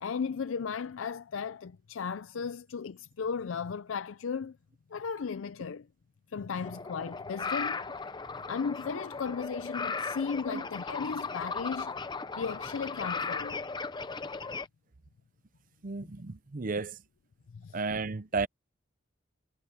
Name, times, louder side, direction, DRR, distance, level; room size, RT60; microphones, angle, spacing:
voice 1, 0.0-4.6 4.9-5.9 6.3-7.8 8.5-12.0 12.4-13.6 17.5-17.8, left 5 dB, 85° left, 0.5 m, -35 dB
sound 1, 6.6-14.7, left 4 dB, 25° left, 0.7 m, -37 dB
voice 2, 15.8-17.0 17.7-18.5, right 4 dB, 45° right, 0.6 m, -33 dB
head